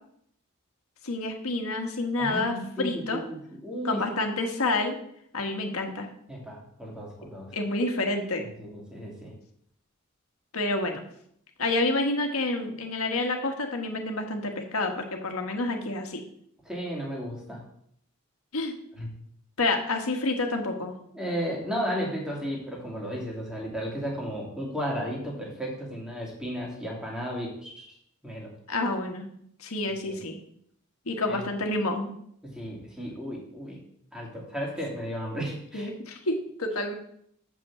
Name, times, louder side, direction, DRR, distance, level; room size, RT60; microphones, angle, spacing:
voice 1, 1.0-3.2 3.8-5.0 5.3-6.1 7.5-8.4 10.5-11.0 11.6-16.2 18.5-18.7 19.6-20.9 28.7-29.3 29.6-30.4 31.1-32.1 35.7-36.9, left 2 dB, 85° left, 3 dB, 1.5 m, -28 dB
voice 2, 2.2-4.3 6.3-7.5 8.6-9.3 16.6-17.6 19.0-19.1 21.1-27.9 28.2-28.5 30.0-30.2 31.3-31.5 32.5-33.8 34.1-35.9, equal, 5° right, -3 dB, 2.5 m, -34 dB
7.1 x 5.5 x 7.2 m, 0.69 s
head